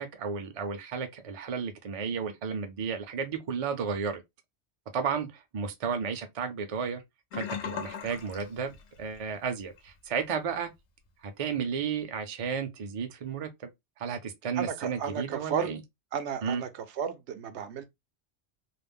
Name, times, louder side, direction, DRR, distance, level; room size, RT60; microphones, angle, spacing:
voice 1, 0.0-4.2 4.9-7.0 7.3-10.7 11.2-13.5 14.0-15.8 16.4-16.6, right 6 dB, 45° right, 0.5 m, -33 dB
Sink (filling or washing), 7.3-9.3 9.6-9.9 10.3-10.4, left 7 dB, 80° left, 0.9 m, -38 dB
voice 2, 14.6-15.7 16.1-17.8, right 7 dB, 80° right, 0.9 m, -33 dB
2.5 x 2.0 x 3.4 m
omnidirectional pair, 1.2 m